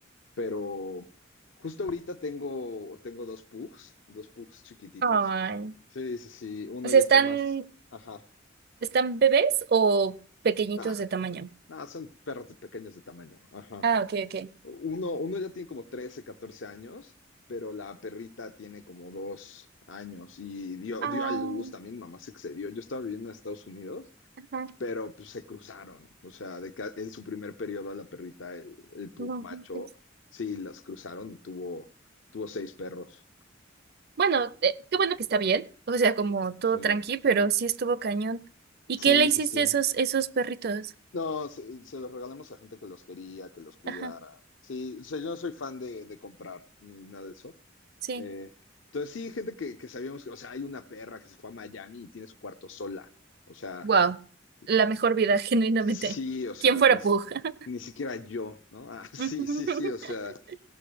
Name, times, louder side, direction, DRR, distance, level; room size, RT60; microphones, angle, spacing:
voice 1, 0.4-1.1 1.6-5.2 5.9-7.4 7.9-8.2 10.8-10.9 11.7-13.9 14.6-17.1 17.5-24.1 24.8-29.9 30.3-31.9 32.3-33.2 36.7-37.0 39.0-39.7 41.1-47.5 48.1-48.5 48.9-53.1 53.5-53.9 55.9-57.0 57.7-60.4, left 3 dB, 75° left, 0.7 m, -38 dB
voice 2, 5.0-5.7 6.8-7.6 8.8-10.2 10.4-11.5 13.8-14.5 21.0-21.7 24.5-24.7 29.2-29.8 34.2-38.4 38.9-40.9 43.9-44.1 48.0-48.3 53.8-54.2 54.7-56.2 56.6-57.5 59.2-59.9, right 5 dB, 55° right, 0.5 m, -25 dB
16.5 x 6.2 x 5.0 m
head